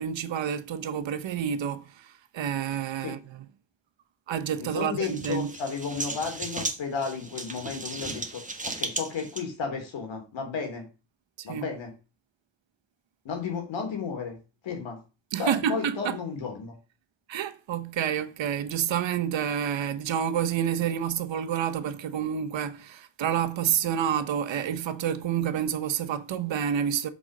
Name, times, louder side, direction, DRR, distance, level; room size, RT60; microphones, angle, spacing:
voice 1, 0.0-3.4 4.3-5.5 11.5-11.7 15.3-16.2 17.3-27.1, right 9 dB, 80° right, 1.0 m, -29 dB
voice 2, 4.6-10.8 11.4-11.9 13.2-14.4 14.6-15.0 15.4-16.8, left 5 dB, 90° left, 3.0 m, -33 dB
sound 1, 5.0-9.4, right 3 dB, 15° right, 1.4 m, -35 dB
6.2 x 5.4 x 6.5 m
cardioid pair, 110°, 44 cm